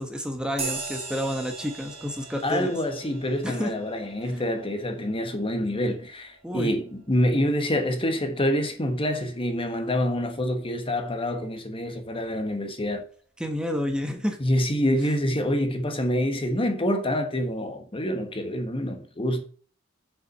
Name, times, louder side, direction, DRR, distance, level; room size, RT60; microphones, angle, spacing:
voice 1, 0.0-2.8 3.4-3.7 6.4-6.7 13.4-14.4, equal, 5° right, 1.2 m, -29 dB
sound 1, 0.6-8.5, right 4 dB, 30° right, 3.9 m, -40 dB
voice 2, 2.4-13.0 14.4-19.4, equal, 25° left, 1.4 m, -26 dB
7.4 x 7.1 x 5.6 m
head